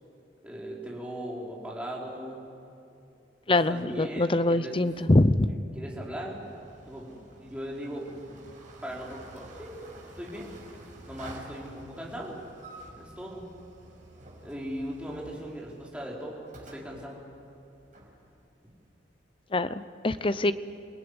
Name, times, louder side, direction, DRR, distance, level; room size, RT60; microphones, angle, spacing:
voice 1, 0.4-2.5 3.5-4.7 5.7-6.4 6.8-8.4 8.8-9.8 10.2-10.5 11.1-12.4 12.9-13.4 14.4-17.2, equal, 5° right, -4 dB, 4.6 m, -39 dB
voice 2, 3.5-5.5 19.5-20.5, left 2 dB, 30° left, 13 dB, 0.7 m, -24 dB
sound 1, 6.2-19.2, right 1 dB, 45° right, 5.7 m, -50 dB
27.0 x 19.5 x 9.8 m, 2.7 s
head